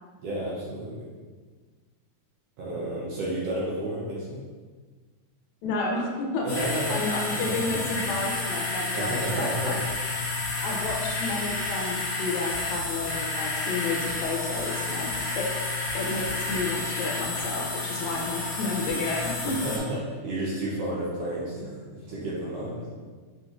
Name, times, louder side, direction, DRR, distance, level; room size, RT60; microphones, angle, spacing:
voice 1, 0.2-1.1 2.6-4.5 6.4-7.0 7.3-7.5 8.9-9.8 10.5-10.6 18.0-18.3 19.4-22.9, right 1 dB, 75° right, -6 dB, 1.6 m, -32 dB
voice 2, 5.6-6.5 6.9-9.8 10.6-15.5 15.9-19.6, left 3 dB, 80° left, 0 dB, 1.9 m, -31 dB
sound 1, 6.5-19.8, left 3 dB, 65° left, 1.4 m, -30 dB
6.3 x 3.0 x 2.4 m, 1.5 s
omnidirectional pair, 3.4 m